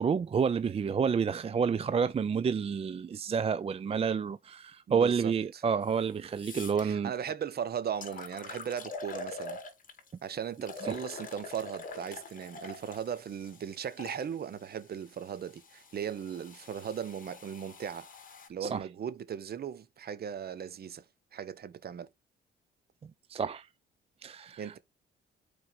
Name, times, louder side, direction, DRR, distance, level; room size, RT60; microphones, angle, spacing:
voice 1, 0.0-7.1 10.9-11.0 18.6-18.8 23.0-23.7 24.2-24.7, right 6 dB, 30° right, 0.4 m, -29 dB
voice 2, 4.9-5.6 6.8-9.6 10.2-18.1 18.5-21.0 21.3-22.1 24.6-24.8, right 8 dB, 50° right, 1.0 m, -38 dB
sound 1, 5.8-5.9 6.3-6.8 7.5-7.6 8.0-10.1 10.6-14.2 15.1-18.5, left 3 dB, 45° left, 1.9 m, -45 dB
4.8 x 4.7 x 5.2 m
cardioid pair, 90°, 20 cm